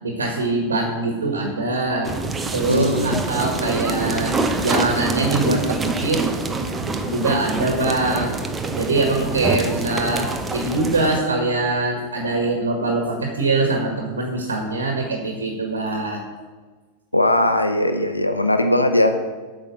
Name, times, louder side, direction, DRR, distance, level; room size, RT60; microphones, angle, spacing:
voice 1, 0.0-2.1 2.5-4.3 4.6-6.2 6.9-8.4 8.8-16.2, right 2 dB, 70° right, 2 dB, 1.6 m, -23 dB
sound 1, 2.0-11.2, right 3 dB, 15° right, 0.9 m, -25 dB
voice 2, 2.7-3.3 17.1-19.3, left 1 dB, 85° left, 7 dB, 0.7 m, -19 dB
8.6 x 6.2 x 7.2 m, 1.4 s
figure-of-eight pair, 90°, 0 cm